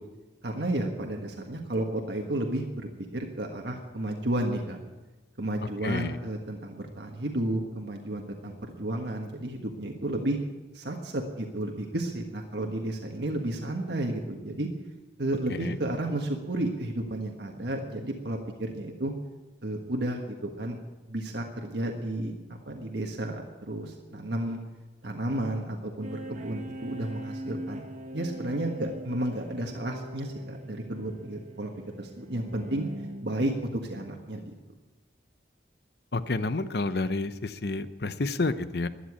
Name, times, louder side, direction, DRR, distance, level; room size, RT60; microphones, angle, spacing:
voice 1, 0.4-4.8 5.4-10.4 10.7-14.7 15.2-19.1 19.6-20.8 21.1-22.3 22.7-24.6 25.0-27.8 28.1-31.7 32.0-32.8 33.2-34.5, right 1 dB, 70° right, 2 dB, 1.5 m, -32 dB
voice 2, 5.8-6.2 15.5-15.8 36.1-38.9, left 3 dB, 60° left, 13 dB, 0.7 m, -30 dB
sound 1, 26.0-33.6, right 1 dB, 40° right, 1.2 m, -41 dB
13.0 x 10.5 x 8.6 m, 1.2 s
head